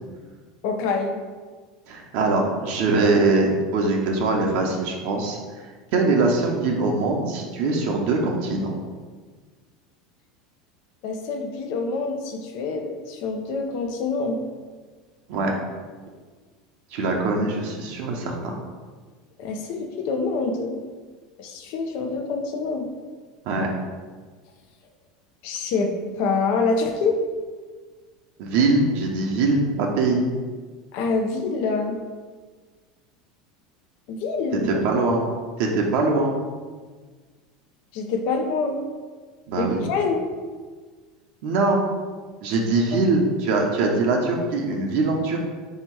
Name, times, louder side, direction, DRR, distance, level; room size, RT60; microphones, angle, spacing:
voice 1, 0.6-1.2 11.0-14.4 19.4-20.8 21.4-22.9 25.4-25.9 26.2-27.2 30.9-32.0 34.1-34.8 37.9-38.8 39.6-40.3 42.9-43.0, left 4 dB, 65° left, 4 dB, 0.5 m, -26 dB
voice 2, 1.9-5.4 5.9-8.7 15.3-15.5 16.9-18.5 23.5-23.7 28.4-30.3 34.6-35.2 35.6-36.3 39.5-39.9 41.4-41.8 42.4-45.4, right 3 dB, 65° right, 0 dB, 0.7 m, -22 dB
3.4 x 2.8 x 4.6 m, 1.4 s
hypercardioid pair, 95°, 3 cm